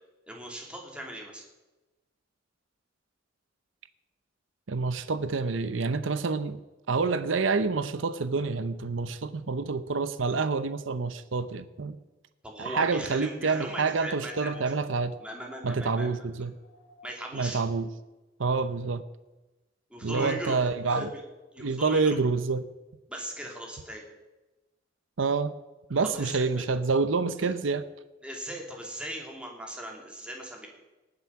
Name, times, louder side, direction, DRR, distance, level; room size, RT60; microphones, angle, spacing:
voice 1, 0.3-1.4 12.4-14.6 15.2-16.3 17.0-17.6 19.9-21.2 21.5-22.2 23.1-24.0 26.0-26.7 27.4-27.5 28.2-30.7, right 1 dB, 5° right, 0 dB, 2.9 m, -39 dB
voice 2, 4.7-6.6 6.9-12.0 12.6-15.1 15.6-16.5 17.3-17.9 18.4-19.0 20.0-21.1 21.6-22.7 25.2-25.5 25.9-27.8, right 4 dB, 80° right, 12 dB, 0.7 m, -27 dB
sound 1, 14.2-17.4 18.8-18.9, left 1 dB, 90° left, 2.7 m, -52 dB
19.0 x 7.9 x 5.8 m, 1.1 s
head